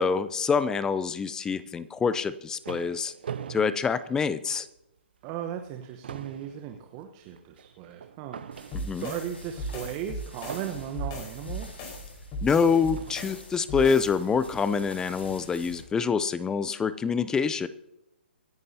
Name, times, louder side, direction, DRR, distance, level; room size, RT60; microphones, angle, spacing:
voice 1, 0.0-3.1 3.5-4.7 8.7-9.1 12.4-17.7, left 5 dB, 10° left, 15 dB, 0.5 m, -26 dB
sound 1, 2.1-4.8 5.2-5.4 5.7-9.2 10.5-11.2 12.1-12.2 12.9-13.4, right 8 dB, 60° right, 0.8 m, -42 dB
voice 2, 5.2-8.4 8.9-11.8, right 10 dB, 30° right, 5 dB, 1.1 m, -37 dB
sound 2, 8.5-15.8, left 1 dB, 85° left, 4.9 m, -47 dB
sound 3, 8.7-14.2, equal, 30° left, 4.8 m, -37 dB
25.0 x 10.5 x 2.8 m, 0.87 s
figure-of-eight pair, 130°, 6 cm